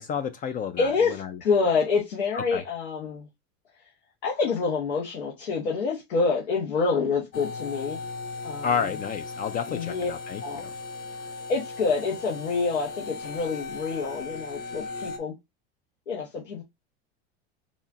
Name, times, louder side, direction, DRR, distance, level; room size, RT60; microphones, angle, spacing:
voice 1, 0.0-1.4 2.3-2.6 8.6-10.7, left 7 dB, 30° left, 0.4 m, -31 dB
voice 2, 0.8-3.3 4.2-8.0 8.4-8.9 9.7-10.1 10.4-10.6 11.5-15.3 16.1-16.6, left 4 dB, 85° left, 1.2 m, -27 dB
sound 1, 7.3-15.2, left 3 dB, 65° left, 1.4 m, -37 dB
4.3 x 2.5 x 3.6 m
hypercardioid pair, 105°, 32 cm